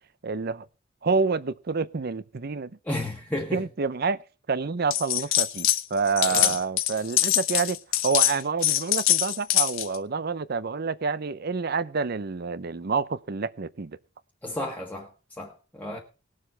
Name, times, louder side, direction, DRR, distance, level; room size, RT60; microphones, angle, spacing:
voice 1, 0.2-0.7 1.0-2.7 3.5-4.2 4.5-7.8 8.0-14.0, right 4 dB, 50° right, 0.6 m, -28 dB
voice 2, 2.9-3.6 6.3-6.5 14.4-15.1 15.4-16.0, left 1 dB, 10° left, 1.5 m, -32 dB
sound 1, 4.9-5.8 6.1-10.0, left 13 dB, 90° left, 1.1 m, -23 dB
19.5 x 7.5 x 4.4 m
head